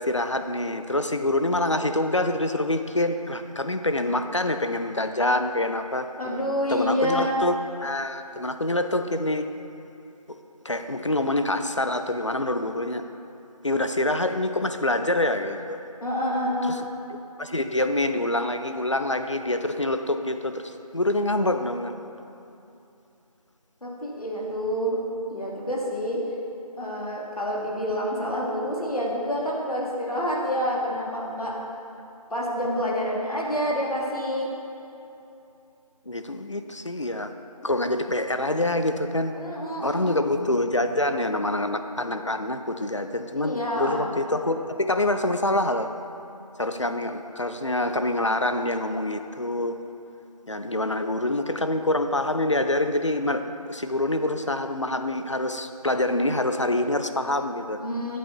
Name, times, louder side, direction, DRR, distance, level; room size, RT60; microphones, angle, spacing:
voice 1, 0.0-6.1 6.7-7.6 7.8-9.5 10.6-13.0 13.6-15.8 16.7-16.8 17.4-21.9 36.1-37.3 37.6-39.3 39.8-45.9 46.6-49.8 50.5-57.8, left 1 dB, 55° left, 8 dB, 0.4 m, -26 dB
voice 2, 6.2-7.4 16.0-16.8 23.8-25.0 25.3-26.2 26.8-31.5 32.3-34.5 39.3-40.2 43.3-44.0 57.8-58.2, equal, 70° left, -3 dB, 1.6 m, -28 dB
8.7 x 8.3 x 2.9 m, 2.7 s
figure-of-eight pair, 175°, 19 cm